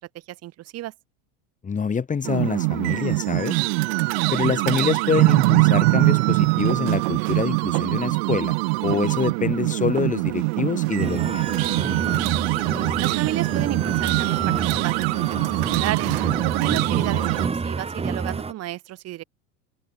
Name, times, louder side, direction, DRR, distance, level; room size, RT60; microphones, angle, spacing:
voice 1, 0.4-0.9 13.0-14.5 14.8-15.3 15.7-16.1 16.4-19.2, right 15 dB, 50° right, 2.6 m, -32 dB
voice 2, 1.6-3.6 4.3-8.6 8.8-11.4, left 6 dB, 25° left, 3.0 m, -26 dB
sound 1, 2.2-17.5, right 29 dB, 70° right, 0.7 m, -23 dB
sound 2, 11.0-18.5, right 4 dB, 20° right, 4.1 m, -29 dB
open air
supercardioid pair, 100°, 33 cm